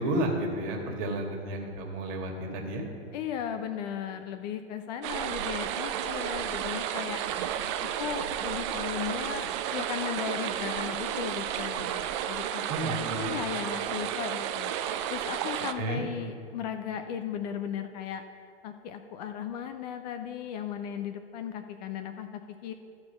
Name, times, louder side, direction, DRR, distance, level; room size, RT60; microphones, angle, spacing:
voice 1, 0.0-2.9 12.7-13.3 15.8-16.0, right 1 dB, 40° right, 1 dB, 1.8 m, -31 dB
voice 2, 3.1-7.2 7.8-12.9 13.2-14.8 15.1-18.2 18.6-22.7, left 8 dB, 40° left, 8 dB, 0.5 m, -36 dB
sound 1, 5.0-15.7, right 10 dB, 25° right, 0.3 m, -32 dB
13.0 x 4.5 x 5.6 m, 2.5 s
figure-of-eight pair, 100°, 34 cm